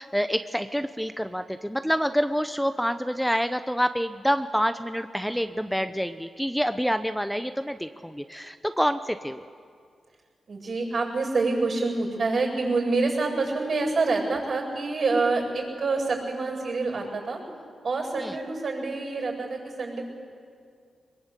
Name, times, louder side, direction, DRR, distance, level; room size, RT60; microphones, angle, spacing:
voice 1, 0.0-9.5 18.2-18.3, equal, ahead, 9 dB, 0.9 m, -27 dB
voice 2, 10.5-17.4 17.8-20.0, right 3 dB, 60° right, 0 dB, 7.7 m, -27 dB
22.5 x 22.0 x 8.3 m, 2.2 s
cardioid pair, 55°, 0 cm